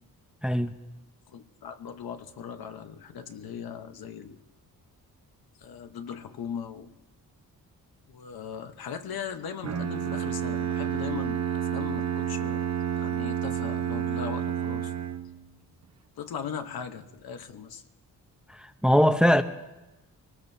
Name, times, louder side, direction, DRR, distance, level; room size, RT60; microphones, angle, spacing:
voice 1, 0.4-0.7 18.6-19.4, equal, ahead, 0.7 m, -21 dB
voice 2, 1.3-4.4 5.6-6.9 8.1-12.6 12.9-14.9 16.2-17.8, left 7 dB, 75° left, 1.1 m, -39 dB
Bowed string instrument, 9.6-15.5, right 9 dB, 45° right, 1.0 m, -30 dB
23.0 x 19.0 x 2.7 m
cardioid pair, 85°, 37 cm